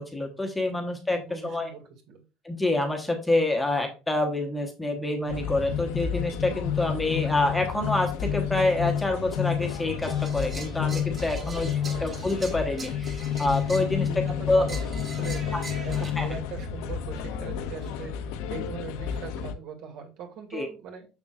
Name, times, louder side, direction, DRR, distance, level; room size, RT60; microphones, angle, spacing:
voice 1, 0.0-1.7 2.4-11.7 12.0-14.7 15.5-15.6 16.0-16.3 20.5-20.7, left 2 dB, 5° left, 2 dB, 1.1 m, -27 dB
voice 2, 1.1-2.2 11.4-12.1 14.0-15.5 15.8-21.1, right 7 dB, 60° right, 3 dB, 2.3 m, -41 dB
sound 1, 5.3-19.5, left 8 dB, 80° left, 0.8 m, -30 dB
sound 2, 10.0-13.9 14.7-16.1, right 3 dB, 20° right, 1.3 m, -42 dB
6.9 x 6.6 x 2.4 m, 0.30 s
cardioid pair, 170°, 0 cm